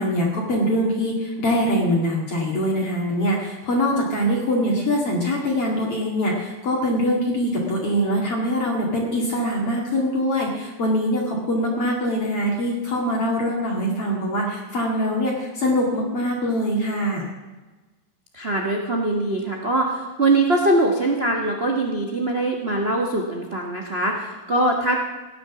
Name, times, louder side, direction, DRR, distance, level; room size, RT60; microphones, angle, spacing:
voice 1, 0.0-17.3, equal, 45° left, -2 dB, 2.8 m, -23 dB
voice 2, 18.3-25.0, right 2 dB, 85° right, 0 dB, 0.5 m, -22 dB
15.5 x 9.5 x 7.0 m, 1.2 s
omnidirectional pair, 3.8 m